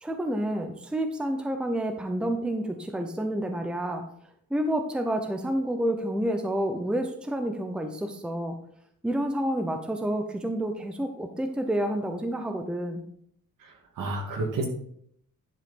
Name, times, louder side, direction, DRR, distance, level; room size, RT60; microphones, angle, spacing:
voice 1, 0.0-4.0 4.5-8.6 9.0-13.1, right 1 dB, 5° right, 5 dB, 0.7 m, -29 dB
voice 2, 13.6-14.7, right 2 dB, 70° right, 1 dB, 2.3 m, -31 dB
10.5 x 5.6 x 4.2 m, 0.67 s
cardioid pair, 160°, 34 cm